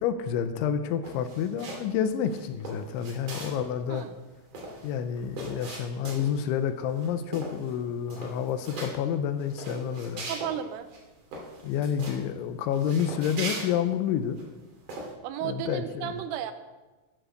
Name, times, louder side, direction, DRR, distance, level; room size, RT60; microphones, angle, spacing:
voice 1, 0.0-4.1 4.8-10.3 11.6-14.4 15.4-16.2, left 8 dB, 85° left, 9 dB, 3.0 m, -29 dB
sound 1, 1.0-1.9 2.3-3.7 3.9-4.0 4.3-6.5 6.9-7.1 7.3-7.8 8.0-8.9 9.4-10.5 10.9-11.0 11.3-12.2 12.7-14.4 14.9-15.1, right 2 dB, 45° right, 4.0 m, -39 dB
voice 2, 10.3-10.9 15.2-16.5, right 10 dB, 85° right, 10 dB, 3.4 m, -33 dB
11.5 x 10.5 x 6.5 m, 1.2 s
omnidirectional pair, 5.6 m